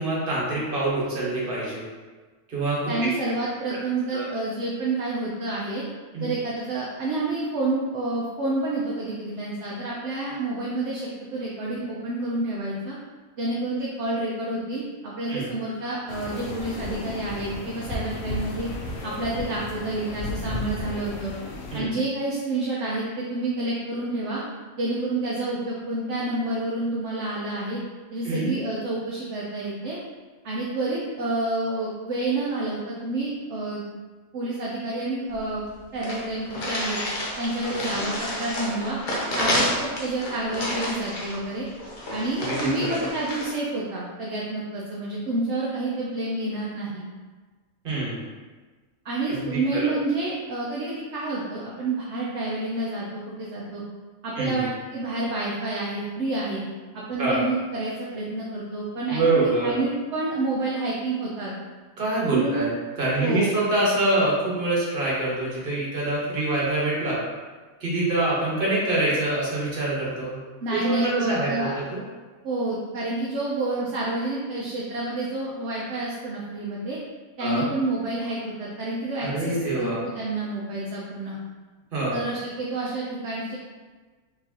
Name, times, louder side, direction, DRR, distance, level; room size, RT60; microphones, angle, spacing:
voice 1, 0.0-1.8 2.5-2.9 4.1-4.3 6.1-6.3 15.3-15.5 21.7-21.9 28.2-28.5 42.4-43.0 47.8-48.2 49.3-49.9 54.3-54.6 57.2-57.4 59.1-59.7 62.0-67.2 67.8-70.4 70.7-72.0 77.4-77.7 79.2-80.0 81.9-82.2, right 2 dB, 40° right, -6 dB, 1.2 m, -25 dB
voice 2, 2.9-5.8 6.2-13.0 13.4-18.7 19.0-21.3 21.7-24.4 24.8-27.8 28.1-30.0 30.4-33.8 34.3-35.6 35.9-37.0 37.4-39.0 39.3-41.7 42.1-47.0 49.0-53.0 53.4-53.8 54.2-56.6 56.9-61.5 62.3-62.6 63.2-63.6 70.6-71.7 72.4-77.0 77.4-81.4 82.1-83.6, right 2 dB, 60° right, -6 dB, 0.9 m, -29 dB
sound 1, 16.1-21.8, left 2 dB, 75° left, 1.0 m, -34 dB
sound 2, 35.3-35.4 35.6-35.7 36.0-43.5, left 1 dB, 45° left, 0.8 m, -30 dB
4.6 x 3.1 x 2.8 m, 1.4 s
omnidirectional pair, 1.5 m